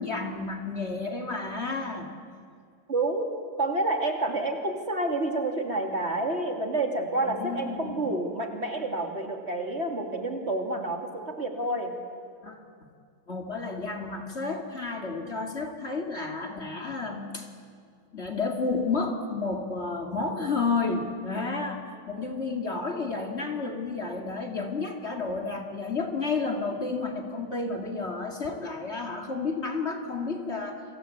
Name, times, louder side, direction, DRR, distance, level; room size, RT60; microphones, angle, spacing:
voice 1, 0.0-2.1 7.2-8.1 12.4-12.6 13.3-17.5 18.1-30.8, left 4 dB, 40° left, 4 dB, 2.6 m, -31 dB
voice 2, 2.9-3.3 3.6-11.9, right 2 dB, 40° right, 4 dB, 3.1 m, -29 dB
29.5 x 24.0 x 8.4 m, 2.3 s
omnidirectional pair, 1.8 m